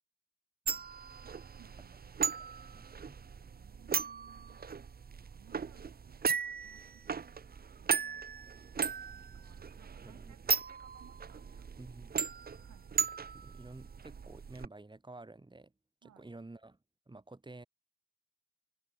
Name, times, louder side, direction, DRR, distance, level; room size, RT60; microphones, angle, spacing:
sound 1, 0.7-14.7, right 6 dB, 30° right, 1.1 m, -37 dB
voice 1, 1.2-2.2 3.5-4.7 5.2-7.5 7.8-8.3 9.1-12.0 12.5-13.0 16.0-16.3, right 11 dB, 70° right, 7.0 m, -64 dB
voice 2, 2.4-3.2 10.0-10.3 11.8-12.2 13.3-15.7 16.0-16.8 17.1-17.6, right 2 dB, 15° right, 5.8 m, -51 dB
open air
cardioid pair, 90°, 30 cm